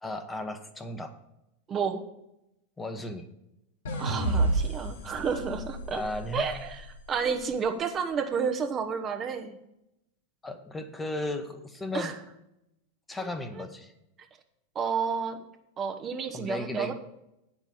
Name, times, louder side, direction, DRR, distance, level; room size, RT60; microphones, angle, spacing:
voice 1, 0.0-1.2 2.8-3.3 5.9-6.5 10.4-12.2 13.1-13.9 16.3-16.9, left 2 dB, 10° left, 8 dB, 0.9 m, -35 dB
voice 2, 1.7-2.0 4.0-6.0 6.3-6.8 7.1-9.6 11.9-12.2 13.2-13.3 14.7-15.4 15.8-16.9, right 6 dB, 25° right, 6 dB, 0.9 m, -30 dB
sound 1, 3.9-7.1, right 2 dB, 60° left, 1.4 m, -31 dB
9.4 x 5.8 x 7.0 m, 0.86 s
figure-of-eight pair, 90°, 0 cm